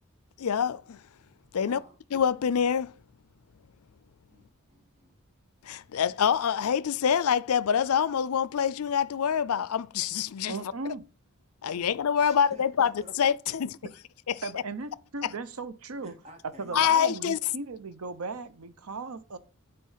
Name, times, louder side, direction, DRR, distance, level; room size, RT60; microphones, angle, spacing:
voice 1, 0.4-1.0 1.5-1.8 2.1-2.9 5.6-10.7 11.6-12.9 13.2-13.7 14.3-14.6 15.2-15.3 16.7-17.4, left 7 dB, 80° left, 0.4 m, -26 dB
voice 2, 1.5-2.0 4.3-5.2 12.2-13.1 16.0-16.8, right 1 dB, 30° right, 2.2 m, -51 dB
voice 3, 10.5-11.0 14.4-16.1 16.6-19.4, right 3 dB, 80° right, 0.8 m, -37 dB
10.5 x 4.5 x 5.6 m
head